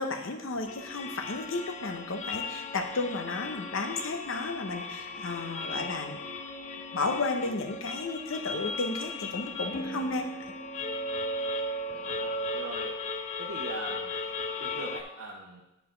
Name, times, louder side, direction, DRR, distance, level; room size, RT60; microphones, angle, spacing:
voice 1, 0.0-6.2 6.9-10.3, left 3 dB, 65° left, 5 dB, 0.9 m, -33 dB
sound 1, 0.7-15.0, left 2 dB, 35° left, 0.4 m, -36 dB
voice 2, 11.9-12.9 13.4-14.2 14.6-15.6, right 2 dB, 70° right, -2 dB, 0.8 m, -41 dB
9.8 x 5.0 x 3.9 m, 0.92 s
head